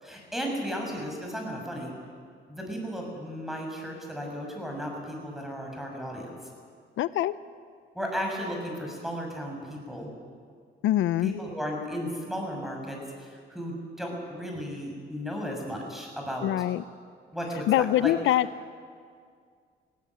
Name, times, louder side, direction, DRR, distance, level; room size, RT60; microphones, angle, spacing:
voice 1, 0.0-1.9 2.5-6.3 7.9-10.1 11.2-16.5 17.3-18.1, equal, ahead, 1 dB, 6.7 m, -35 dB
voice 2, 7.0-7.3 10.8-11.3 16.4-16.8 17.7-18.5, left 13 dB, 80° left, 16 dB, 0.6 m, -24 dB
19.5 x 17.0 x 9.6 m, 2.1 s
cardioid pair, 90°, 20 cm